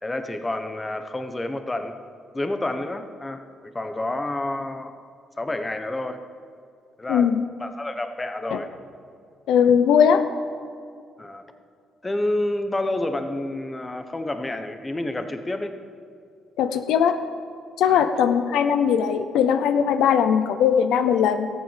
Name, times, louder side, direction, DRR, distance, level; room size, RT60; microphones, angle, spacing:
voice 1, 0.0-2.0 2.3-5.0 5.4-6.2 7.0-7.3 7.6-8.7 11.2-11.4 12.0-15.8 17.9-18.1, left 1 dB, 20° left, 7 dB, 1.2 m, -29 dB
voice 2, 7.1-7.4 8.5-8.6 9.5-10.2 16.6-17.2 17.8-21.5, left 8 dB, 85° left, 9 dB, 0.7 m, -19 dB
14.0 x 9.0 x 7.4 m, 2.3 s
cardioid pair, 90°, 0 cm